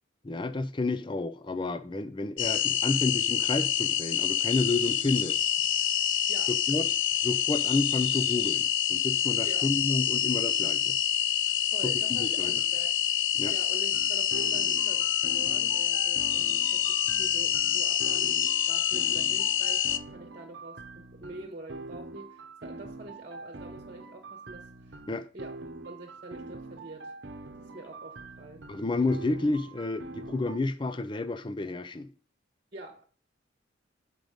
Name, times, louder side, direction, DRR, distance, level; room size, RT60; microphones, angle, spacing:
voice 1, 0.2-5.4 6.7-6.9 7.2-11.0 11.8-12.5 13.4-13.5 25.1-25.2 28.7-32.1, left 2 dB, 25° left, 0.4 m, -30 dB
sound 1, 2.4-20.0, left 10 dB, 75° left, 0.5 m, -27 dB
voice 2, 11.6-13.0 13.5-25.0 25.3-27.1 27.6-28.6 32.7-33.1, right 2 dB, 45° right, 1.1 m, -46 dB
sound 2, 13.9-30.6, right 2 dB, 65° right, 0.9 m, -44 dB
7.8 x 5.1 x 5.1 m
head